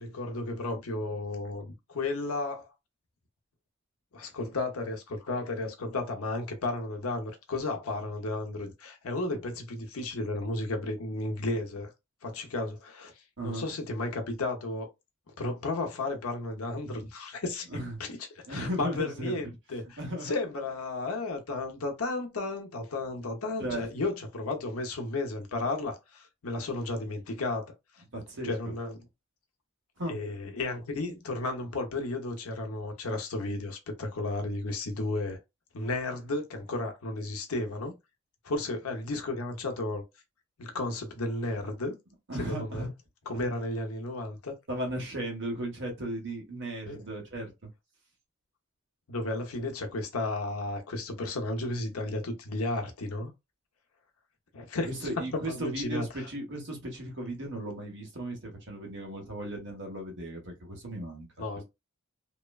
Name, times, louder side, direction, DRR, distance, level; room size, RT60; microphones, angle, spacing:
voice 1, 0.0-2.7 4.1-11.9 12.2-14.9 15.4-17.7 18.0-18.1 18.5-28.0 28.4-29.0 30.1-35.4 35.7-38.0 38.4-40.0 40.6-41.9 42.3-42.9 43.3-44.5 46.9-47.0 49.1-53.3 54.5-56.1 61.4-61.6, left 2 dB, 90° left, 0.7 m, -33 dB
voice 2, 18.5-19.4 20.0-20.3 23.6-23.9 28.1-28.5 30.0-30.1 42.3-42.9 43.3-43.5 44.7-47.7 54.9-61.3, right 1 dB, 60° right, 1.2 m, -36 dB
2.9 x 2.1 x 2.3 m
head